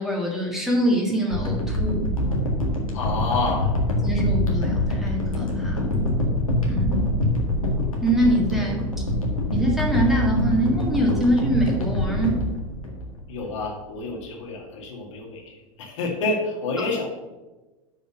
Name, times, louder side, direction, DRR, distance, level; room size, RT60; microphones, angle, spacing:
voice 1, 0.0-2.1 4.0-6.1 6.7-7.1 8.0-8.8 9.5-12.4 16.8-16.9, right 1 dB, ahead, -1 dB, 1.9 m, -24 dB
sound 1, 1.3-13.5 14.1-14.2, left 1 dB, 85° left, 1.8 m, -25 dB
voice 2, 2.9-3.7 8.6-8.7 13.3-17.1, left 3 dB, 65° left, -1 dB, 2.2 m, -28 dB
6.6 x 5.2 x 7.0 m, 1.1 s
figure-of-eight pair, 90°, 17 cm